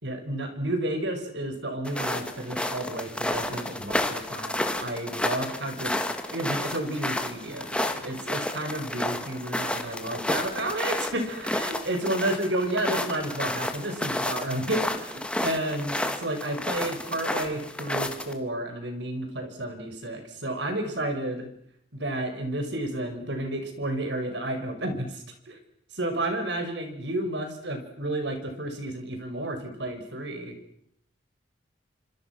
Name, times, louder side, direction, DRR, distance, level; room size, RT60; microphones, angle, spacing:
voice 1, 0.0-21.5 21.9-25.6 25.9-30.6, right 1 dB, 70° right, 6 dB, 6.1 m, -31 dB
sound 1, 1.8-18.3, left 1 dB, 5° left, 2.2 m, -31 dB
27.5 x 26.0 x 6.2 m, 0.71 s
head